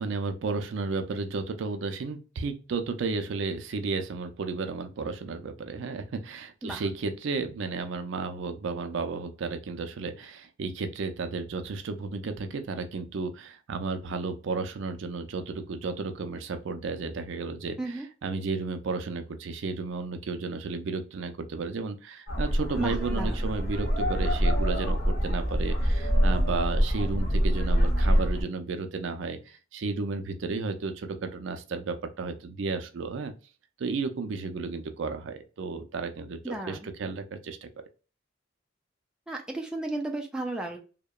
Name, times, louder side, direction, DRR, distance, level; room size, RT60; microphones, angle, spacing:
voice 1, 0.0-33.3 33.8-37.7, right 4 dB, 70° right, 8 dB, 0.4 m, -33 dB
sound 1, 22.3-28.4, equal, 55° left, 0.8 m, -25 dB
voice 2, 22.8-23.4 36.4-36.9 39.3-40.8, right 2 dB, 5° right, 1 dB, 0.4 m, -33 dB
2.8 x 2.1 x 2.2 m, 0.34 s
head